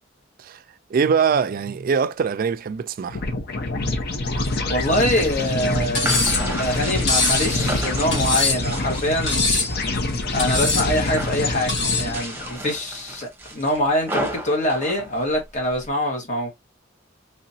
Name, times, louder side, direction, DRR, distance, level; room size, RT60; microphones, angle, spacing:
voice 1, 0.9-3.2, right 6 dB, 50° right, 0.3 m, -22 dB
sound 1, 3.1-12.6, left 2 dB, 55° left, 0.8 m, -26 dB
voice 2, 4.7-9.5 10.3-16.5, left 1 dB, 40° left, 1.5 m, -24 dB
sound 2, 4.9-9.8 10.2-10.7 11.0-11.5 12.0-15.9, right 1 dB, 10° right, 0.9 m, -33 dB
Cutlery silverware, 5.9-6.5 7.1-7.5 8.1-8.7 9.3-9.8 10.4-10.9 11.7-12.1, left 3 dB, 70° left, 1.7 m, -22 dB
3.3 x 2.9 x 2.7 m
head